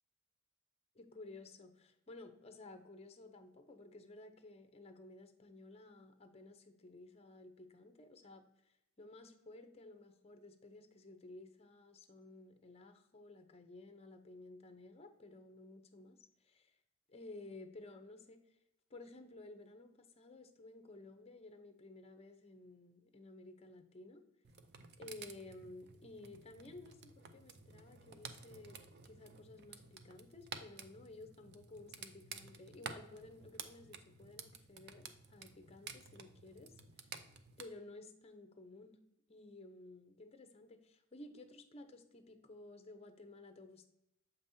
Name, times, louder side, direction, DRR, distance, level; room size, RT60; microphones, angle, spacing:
voice 1, 0.9-16.8 17.1-18.4 18.9-24.2 25.0-36.8 37.6-39.0 39.3-43.9, left 2 dB, 30° left, 7 dB, 0.7 m, -55 dB
sound 1, 24.4-37.7, right 5 dB, 50° right, 0.5 m, -52 dB
7.4 x 5.3 x 2.7 m, 0.84 s
head